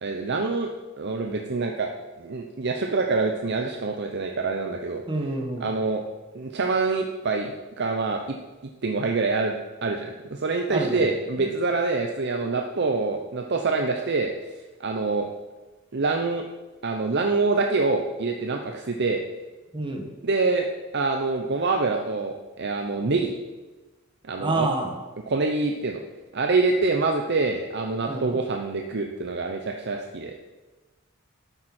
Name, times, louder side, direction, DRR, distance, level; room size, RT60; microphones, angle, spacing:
voice 1, 0.0-1.9 2.2-5.0 5.6-6.0 6.3-7.5 7.8-8.4 8.8-14.3 14.8-15.3 15.9-16.4 16.8-19.2 20.2-20.7 20.9-23.3 24.2-24.7 25.3-26.0 26.3-30.3, right 3 dB, 55° right, 3 dB, 0.7 m, -25 dB
voice 2, 5.1-5.7 10.7-11.0 19.7-20.0 24.4-24.9 28.1-28.3, right 2 dB, 25° right, 3 dB, 1.5 m, -27 dB
12.5 x 8.8 x 4.3 m, 1.2 s
head